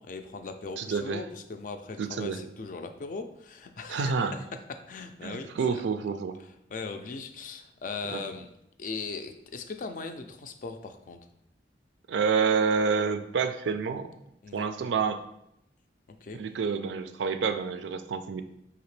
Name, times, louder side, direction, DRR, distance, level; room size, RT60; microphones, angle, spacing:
voice 1, 0.0-4.3 4.9-5.5 6.7-8.5 8.8-11.2 14.4-14.7 16.2-16.4, left 4 dB, 45° left, 7 dB, 0.4 m, -39 dB
voice 2, 0.8-1.2 2.0-2.4 3.9-4.3 5.2-6.4 8.1-8.2 12.1-14.1 14.5-15.2 16.3-18.4, right 5 dB, 85° right, 9 dB, 0.4 m, -28 dB
4.9 x 2.8 x 3.1 m, 0.79 s
head